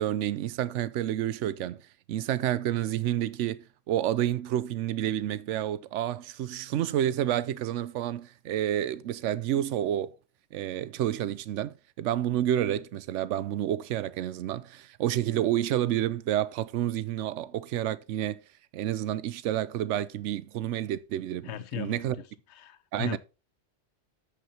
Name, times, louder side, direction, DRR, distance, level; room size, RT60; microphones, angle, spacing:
voice 1, 0.0-1.8 2.1-10.1 10.5-18.4 18.7-22.2 22.9-23.2, right 12 dB, 80° right, 0.9 m, -29 dB
voice 2, 21.4-22.2 22.5-23.2, left 13 dB, 70° left, 0.9 m, -38 dB
14.0 x 4.9 x 2.8 m
omnidirectional pair, 1.2 m